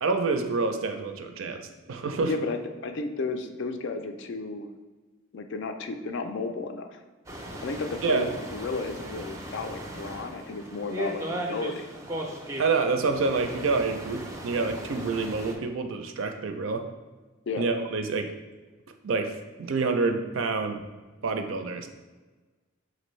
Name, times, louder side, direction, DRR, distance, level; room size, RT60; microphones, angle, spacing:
voice 1, 0.0-1.6 1.9-2.3 8.0-8.3 12.6-16.8 17.6-18.3 19.0-20.8 21.2-21.9, right 4 dB, 75° right, 6 dB, 0.4 m, -27 dB
voice 2, 2.2-4.7 5.3-7.0 7.6-11.9 17.5-17.7, left 3 dB, 60° left, 7 dB, 0.4 m, -33 dB
sound 1, 7.3-15.5, right 1 dB, 15° right, 0.4 m, -37 dB
5.9 x 2.6 x 3.1 m, 1.3 s
head